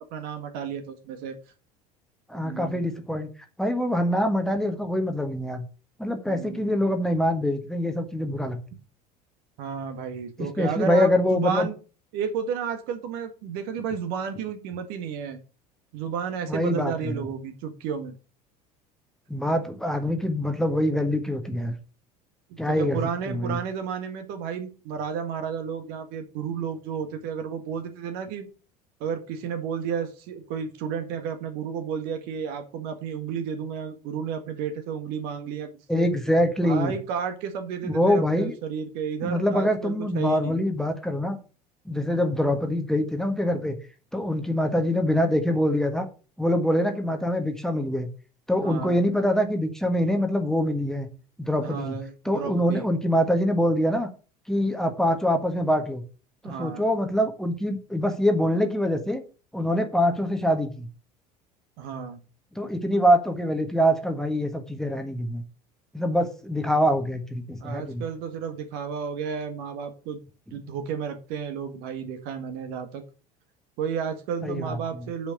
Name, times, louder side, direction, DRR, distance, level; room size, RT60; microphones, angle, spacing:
voice 1, 0.1-1.3 2.4-2.8 6.3-6.7 9.6-11.8 12.1-15.4 15.9-18.1 22.7-28.5 29.0-35.7 35.9-36.1 36.6-40.6 48.6-49.0 51.6-52.8 56.4-56.9 61.8-62.2 67.6-70.2 70.5-73.0 73.8-75.3, right 7 dB, 50° right, 7 dB, 1.7 m, -32 dB
voice 2, 2.3-3.3 3.6-5.6 6.0-8.6 10.4-11.7 16.5-17.1 19.3-21.7 22.6-23.0 23.3-23.6 35.9-36.9 37.8-38.5 39.2-41.4 41.8-43.7 44.1-46.1 46.4-48.1 48.5-51.1 51.4-52.0 52.2-54.1 54.5-56.0 56.4-59.2 59.5-60.9 62.5-65.4 65.9-68.0 74.4-74.8, equal, ahead, 5 dB, 1.5 m, -24 dB
9.0 x 5.1 x 6.5 m, 0.36 s
figure-of-eight pair, 70°, 20 cm